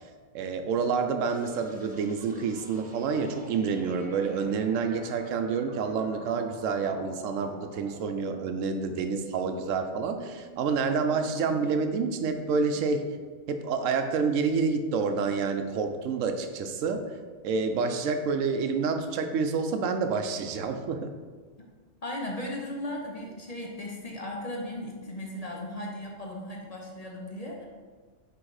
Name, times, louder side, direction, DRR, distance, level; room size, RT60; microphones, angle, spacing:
voice 1, 0.3-13.1 13.5-17.1 17.4-21.1, right 5 dB, 90° right, 7 dB, 1.0 m, -28 dB
sound 1, 1.3-14.9, equal, 10° right, 0.7 m, -50 dB
voice 2, 22.0-27.7, left 1 dB, 35° left, -1 dB, 0.7 m, -36 dB
6.2 x 3.2 x 4.7 m, 1.5 s
omnidirectional pair, 1.3 m